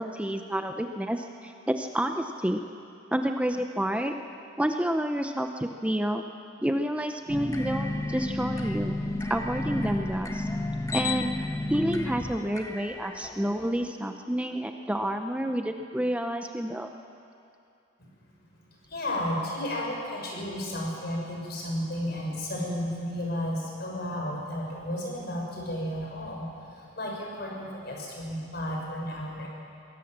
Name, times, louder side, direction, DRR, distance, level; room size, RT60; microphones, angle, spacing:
voice 1, 0.0-2.6 3.1-4.1 4.6-6.2 6.6-9.0 9.3-10.5 10.9-11.3 11.7-16.9, equal, 5° right, 5 dB, 0.7 m, -29 dB
sound 1, 7.3-13.8, left 2 dB, 15° left, 1.2 m, -32 dB
voice 2, 18.9-26.5 26.8-29.5, left 1 dB, 60° left, -2 dB, 5.7 m, -33 dB
23.0 x 17.5 x 7.4 m, 2.6 s
head